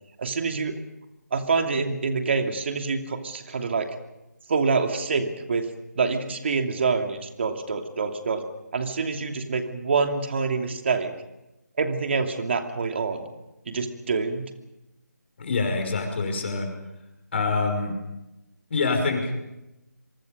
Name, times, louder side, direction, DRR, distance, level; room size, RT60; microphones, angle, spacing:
voice 1, 0.2-0.8 1.3-3.9 4.5-5.7 5.9-8.4 8.7-11.1 11.8-13.3 13.7-14.5, right 4 dB, 40° right, 5 dB, 2.7 m, -26 dB
voice 2, 15.4-16.7 17.3-17.9 18.7-19.3, left 4 dB, 40° left, 4 dB, 5.6 m, -25 dB
26.0 x 24.5 x 5.3 m, 0.94 s
figure-of-eight pair, 155°, 9 cm